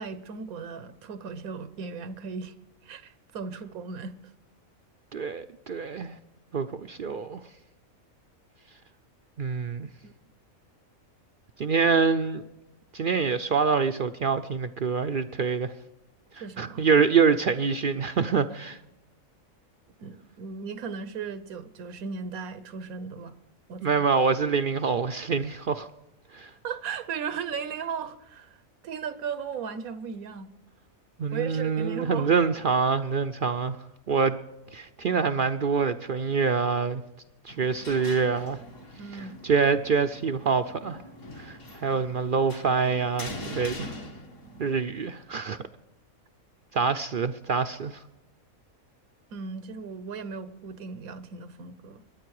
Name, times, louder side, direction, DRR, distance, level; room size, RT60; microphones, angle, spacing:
voice 1, 0.0-2.5 2.8-4.2 10.0-10.1 16.4-16.9 20.0-23.4 23.7-24.0 26.6-28.5 28.8-30.5 31.3-32.3 39.0-39.4 49.3-52.0, right 6 dB, 85° right, 1.3 m, -36 dB
voice 2, 5.1-6.1 6.5-7.4 9.4-9.9 11.6-12.4 12.9-15.7 16.3-18.8 23.8-25.9 26.3-26.5 31.2-33.8 34.1-34.4 34.7-37.0 37.4-38.6 39.1-41.0 41.4-43.9 44.6-45.6 46.7-48.0, right 5 dB, 60° right, 0.5 m, -25 dB
sound 1, 37.5-44.8, left 1 dB, 65° left, 2.3 m, -43 dB
22.5 x 10.0 x 4.7 m
omnidirectional pair, 1.5 m